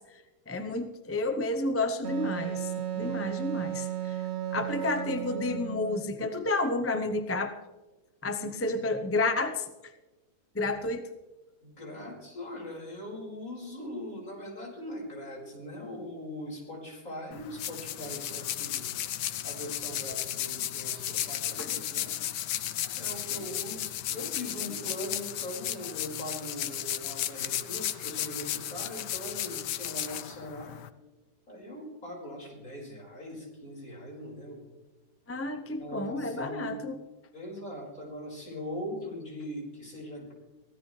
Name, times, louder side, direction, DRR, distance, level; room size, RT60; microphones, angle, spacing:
voice 1, 0.5-4.2 4.5-7.5 8.2-9.7 10.5-11.0 21.6-21.7 35.3-37.0, left 2 dB, 15° left, 7 dB, 0.6 m, -31 dB
Wind instrument woodwind instrument, 2.0-6.1, right 10 dB, 55° right, 0.8 m, -34 dB
voice 2, 11.6-18.9 19.4-22.2 23.0-30.8 31.5-34.7 35.8-36.8 37.3-40.3, left 1 dB, 55° left, -2 dB, 5.5 m, -41 dB
sound 1, 17.3-30.9, left 12 dB, 90° left, 1.3 m, -34 dB
24.5 x 16.0 x 3.3 m, 1.1 s
omnidirectional pair, 1.8 m